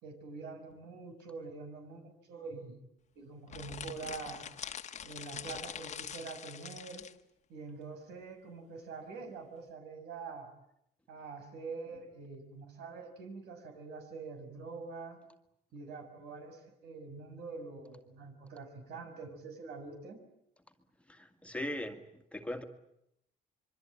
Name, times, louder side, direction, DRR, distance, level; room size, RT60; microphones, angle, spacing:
voice 1, 0.0-2.8 3.1-4.5 5.0-7.1 7.5-10.5 11.1-15.2 15.7-20.2, right 4 dB, 75° right, 5 dB, 6.4 m, -45 dB
sound 1, 3.5-7.2, left 8 dB, 45° left, 1.4 m, -44 dB
voice 2, 21.1-22.0 22.3-22.6, left 1 dB, 5° left, 5 dB, 2.0 m, -39 dB
26.0 x 23.5 x 8.9 m, 0.80 s
cardioid pair, 110°, 17 cm